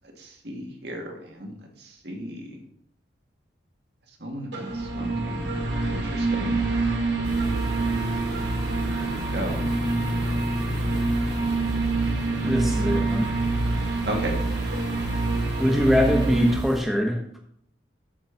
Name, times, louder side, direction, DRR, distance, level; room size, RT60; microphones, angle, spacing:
voice 1, 0.4-1.5 2.0-2.4 4.2-6.6 8.9-9.0 9.3-9.6 14.1-14.4, right 1 dB, 65° right, 1 dB, 1.9 m, -34 dB
sound 1, 4.5-16.6, right 2 dB, 85° right, 2.2 m, -26 dB
sound 2, 7.2-16.8, right 1 dB, 25° right, 1.9 m, -37 dB
voice 2, 12.4-13.3 15.6-17.4, equal, ahead, 0 dB, 1.3 m, -23 dB
8.6 x 4.3 x 7.0 m, 0.67 s
head